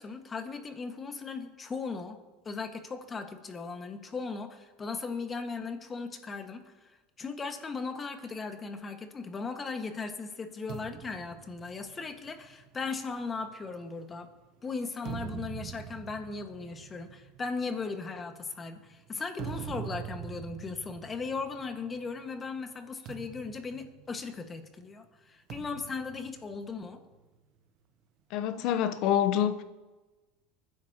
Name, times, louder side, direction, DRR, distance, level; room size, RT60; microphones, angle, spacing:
voice 1, 0.0-2.2 2.5-6.6 7.2-14.3 14.6-27.0, left 4 dB, 25° left, 1.7 m, -37 dB
sound 1, 10.7-14.3 14.8-22.2 22.5-22.7 23.1-24.7 25.5-27.2, right 10 dB, 60° right, 0.9 m, -44 dB
voice 2, 28.3-29.6, left 10 dB, 60° left, 0.9 m, -26 dB
24.0 x 10.0 x 3.0 m
hypercardioid pair, 95°, 0 cm